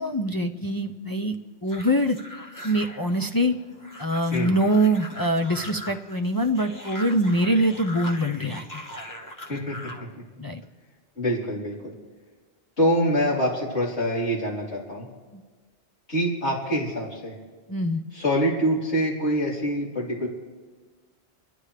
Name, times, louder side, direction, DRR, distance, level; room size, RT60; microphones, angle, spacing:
voice 1, 0.0-1.3 1.6-2.2 2.6-3.6 4.0-8.6 10.4-10.6 15.3-15.4 17.7-18.0, right 1 dB, 30° left, 3 dB, 0.4 m, -24 dB
sound 1, 1.7-10.1, left 1 dB, 15° left, 1.5 m, -41 dB
voice 2, 11.2-11.9 12.8-15.1 16.1-17.4 18.1-20.3, equal, 80° left, -6 dB, 4.0 m, -25 dB
29.5 x 11.0 x 3.3 m, 1.4 s
omnidirectional pair, 1.1 m